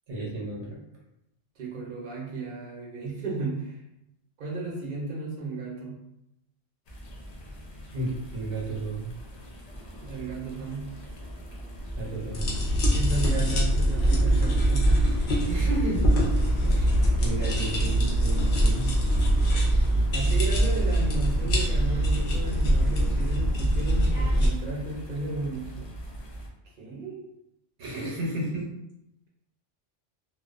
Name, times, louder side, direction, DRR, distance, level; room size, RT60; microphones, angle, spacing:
voice 1, 0.1-0.8 7.9-9.1 12.0-12.5 15.4-16.1 16.6-16.9 17.2-18.9 27.8-28.7, right 1 dB, 75° right, -3 dB, 1.0 m, -32 dB
voice 2, 1.6-3.7 4.4-5.9 10.0-10.9 12.8-14.9 20.1-25.9 26.8-27.3, right 3 dB, 50° right, -3 dB, 0.7 m, -34 dB
sound 1, 6.9-26.5, equal, 85° left, 0.3 m, -42 dB
sound 2, 6.9-20.2, equal, 10° left, 0.5 m, -46 dB
sound 3, 12.3-24.5, right 1 dB, 55° left, 0.7 m, -23 dB
2.3 x 2.2 x 2.4 m, 0.83 s
omnidirectional pair, 1.2 m